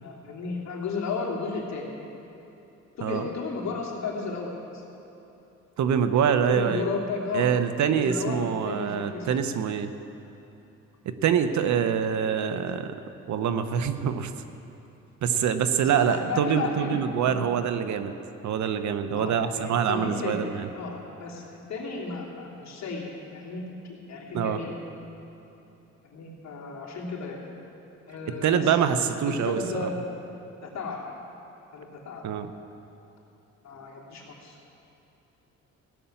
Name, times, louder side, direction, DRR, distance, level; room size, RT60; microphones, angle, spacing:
voice 1, 0.0-1.9 3.0-4.8 6.5-9.3 15.8-17.5 19.1-24.7 26.0-27.4 28.1-28.7 29.2-30.0 30.6-31.0 31.7-32.2 33.6-34.6, left 4 dB, 65° left, -3 dB, 3.0 m, -34 dB
voice 2, 5.8-6.8 7.3-9.9 11.0-12.9 13.3-14.3 15.2-18.2 18.4-20.7 24.3-24.6 28.4-29.9 32.2-32.5, right 8 dB, 70° right, 9 dB, 0.9 m, -25 dB
17.0 x 6.9 x 8.9 m, 3.0 s
cardioid pair, 90°, 30 cm